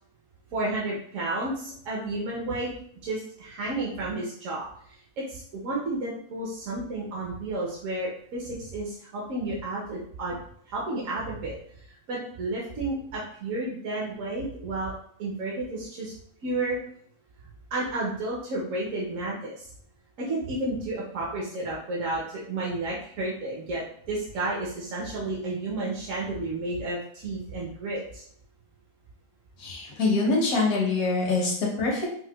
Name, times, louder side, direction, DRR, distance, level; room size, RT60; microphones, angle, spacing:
voice 1, 0.5-2.7 3.0-10.3 10.7-14.9 15.2-16.1 16.4-16.8 17.7-19.7 20.2-28.2, right 2 dB, 65° right, -4 dB, 1.1 m, -32 dB
voice 2, 29.6-32.1, left 3 dB, 75° left, -3 dB, 1.3 m, -24 dB
4.5 x 2.2 x 2.3 m, 0.63 s
omnidirectional pair, 1.5 m